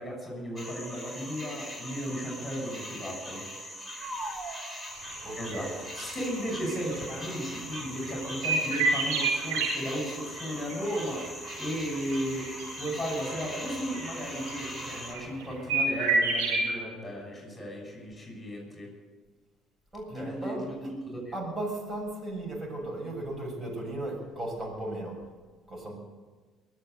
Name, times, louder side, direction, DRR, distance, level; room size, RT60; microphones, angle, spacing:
voice 1, 0.0-3.5 5.4-11.3 11.6-18.9 20.1-21.3, equal, 20° left, 0 dB, 6.7 m, -35 dB
sound 1, 0.6-15.1, equal, 10° right, 4.0 m, -41 dB
voice 2, 4.0-4.7 5.2-5.8 19.9-20.7 21.3-25.2 25.7-25.9, right 1 dB, 30° right, 0 dB, 6.9 m, -36 dB
sound 2, 5.0-5.2 5.5-5.7 6.0-7.1 7.7-9.7 10.4-13.4 13.9-15.4 15.7-16.7, right 4 dB, 80° right, 5.8 m, -29 dB
22.5 x 7.8 x 8.1 m, 1.4 s
supercardioid pair, 70°, 0 cm